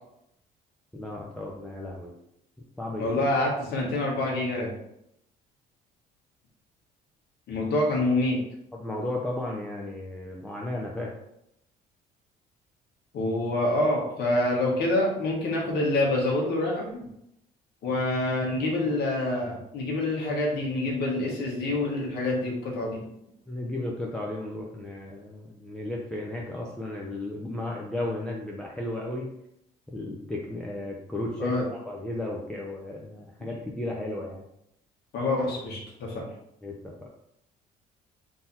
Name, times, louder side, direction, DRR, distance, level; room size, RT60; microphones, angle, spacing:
voice 1, 0.9-2.1 2.8-3.2 8.7-11.1 23.5-29.3 29.9-34.4 36.6-36.9, left 1 dB, 5° left, -3 dB, 0.6 m, -34 dB
voice 2, 3.0-4.7 7.5-8.4 13.1-17.1 17.8-23.0 31.4-31.6 35.1-36.2, left 2 dB, 75° left, -2 dB, 1.5 m, -26 dB
3.9 x 2.9 x 4.1 m, 0.78 s
cardioid pair, 110°, 17 cm